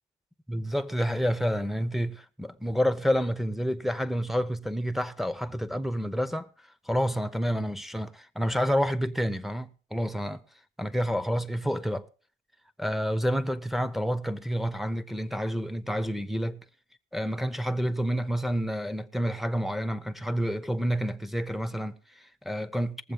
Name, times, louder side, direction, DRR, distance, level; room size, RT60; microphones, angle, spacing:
voice 1, 0.5-6.5 6.9-10.4 10.8-12.1 12.8-16.6 17.1-23.1, equal, ahead, 0.7 m, -29 dB
19.0 x 7.5 x 5.4 m
cardioid pair, 90°, 20 cm